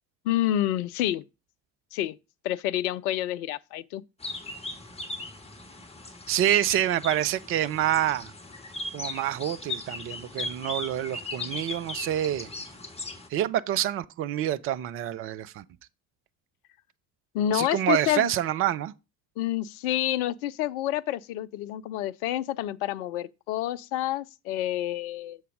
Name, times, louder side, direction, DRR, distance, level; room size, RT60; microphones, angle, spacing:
voice 1, 0.2-1.2 1.9-2.2 2.4-4.0 17.3-18.3 19.4-25.4, left 12 dB, 60° left, 0.6 m, -28 dB
sound 1, 4.2-13.3, left 2 dB, 10° left, 1.4 m, -38 dB
voice 2, 6.3-8.3 8.9-12.5 13.3-15.6 17.5-18.9, right 11 dB, 30° right, 0.4 m, -27 dB
6.8 x 4.6 x 4.8 m
figure-of-eight pair, 55°, 50 cm